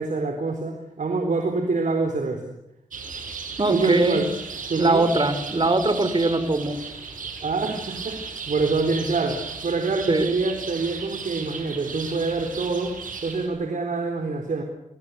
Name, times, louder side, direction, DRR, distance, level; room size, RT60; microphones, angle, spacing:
voice 1, 0.0-2.5 3.7-4.3 4.7-5.0 7.4-13.0 13.2-14.6, right 3 dB, 70° right, 4 dB, 4.1 m, -25 dB
sound 1, 2.9-13.5, right 5 dB, 90° right, 7.3 m, -36 dB
voice 2, 3.6-4.2 4.8-6.8 10.1-10.3, right 2 dB, 40° right, 11 dB, 4.7 m, -21 dB
29.5 x 20.5 x 8.3 m, 0.84 s
cardioid pair, 55°, 13 cm